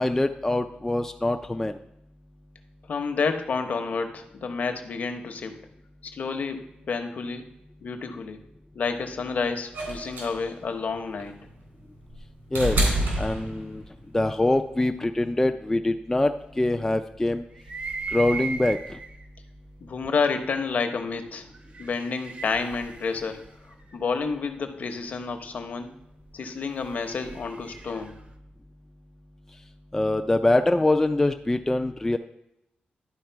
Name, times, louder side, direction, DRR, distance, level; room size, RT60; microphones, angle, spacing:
voice 1, 0.0-1.8 12.5-12.8 13.2-13.8 14.1-17.4 18.1-19.0 29.9-32.2, left 2 dB, 10° left, 6 dB, 0.3 m, -24 dB
voice 2, 2.9-5.5 6.0-7.5 7.8-8.4 8.7-11.3 19.8-21.5 21.8-23.4 23.9-25.9 26.3-28.2, left 5 dB, 55° left, 7 dB, 0.9 m, -29 dB
sound 1, 9.7-14.0 15.2-15.3, right 1 dB, 90° right, 3.6 m, -28 dB
sound 2, 17.6-19.2 20.1-20.2 21.5-24.4 26.4-28.2, right 4 dB, 40° right, 0.8 m, -37 dB
11.0 x 4.6 x 4.5 m, 0.83 s
wide cardioid pair, 145°, 3 cm